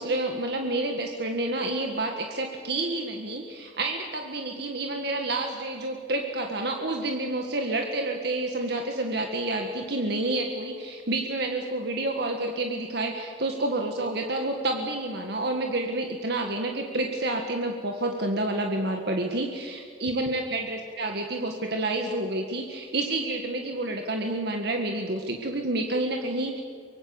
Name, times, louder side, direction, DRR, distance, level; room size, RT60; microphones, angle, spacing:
voice 1, 0.0-26.6, right 2 dB, 60° right, 3 dB, 1.9 m, -29 dB
24.5 x 23.0 x 7.1 m, 2.2 s
head